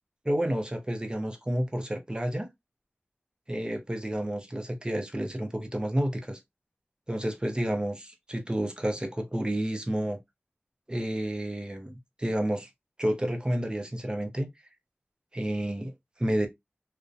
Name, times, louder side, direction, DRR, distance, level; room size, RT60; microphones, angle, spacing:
voice 1, 0.2-2.5 3.5-6.4 7.1-10.2 10.9-12.7 13.0-14.5 15.3-15.9 16.2-16.5, right 1 dB, 20° right, 0.6 m, -30 dB
2.6 x 2.1 x 2.5 m
wide cardioid pair, 65°, 4 cm